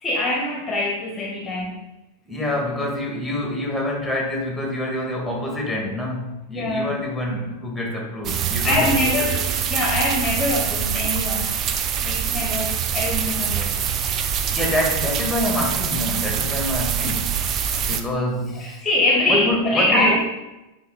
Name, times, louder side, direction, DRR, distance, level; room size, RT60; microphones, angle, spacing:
voice 1, 0.0-1.8 6.5-6.9 8.6-11.7 12.0-13.7 18.5-20.1, left 1 dB, 20° left, -1 dB, 1.3 m, -23 dB
voice 2, 2.3-9.5 14.5-17.4 17.8-18.8 19.3-20.2, left 1 dB, 5° left, 0 dB, 2.1 m, -26 dB
sound 1, 8.2-18.0, right 8 dB, 30° right, 0.6 m, -24 dB
8.5 x 5.3 x 4.0 m, 1.0 s
figure-of-eight pair, 90°, 0 cm